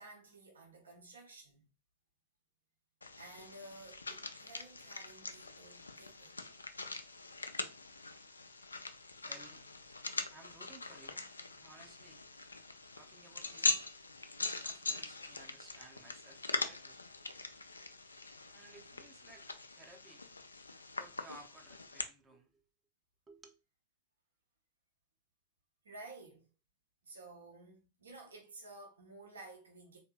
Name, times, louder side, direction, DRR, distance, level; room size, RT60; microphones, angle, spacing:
voice 1, 0.0-1.6 3.2-6.3 25.8-26.5 27.0-30.0, right 2 dB, 70° right, 1.0 m, -53 dB
sound 1, 3.0-22.0, left 3 dB, 80° left, 0.3 m, -42 dB
voice 2, 9.2-9.7 10.3-12.3 13.0-13.8 14.4-17.3 18.5-20.2 20.9-22.6 23.3-23.6, right 2 dB, 15° right, 0.6 m, -58 dB
3.5 x 2.7 x 2.3 m
figure-of-eight pair, 90°, 0 cm